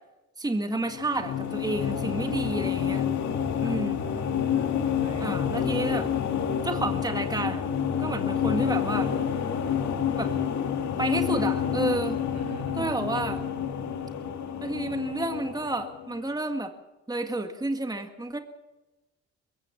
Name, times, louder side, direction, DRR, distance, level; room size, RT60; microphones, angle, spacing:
voice 1, 0.4-3.1 3.6-4.0 5.2-6.1 6.6-7.6 8.0-9.1 10.2-10.3 11.0-12.2 12.8-13.4 14.6-16.7 17.1-18.4, right 2 dB, 15° right, 6 dB, 1.9 m, -30 dB
sound 1, 0.9-16.2, left 8 dB, 65° left, 2.4 m, -28 dB
voice 2, 3.6-5.4 12.3-13.0, right 3 dB, 60° right, 6 dB, 2.9 m, -41 dB
22.0 x 16.5 x 7.3 m, 1.1 s
cardioid pair, 90°, 30 cm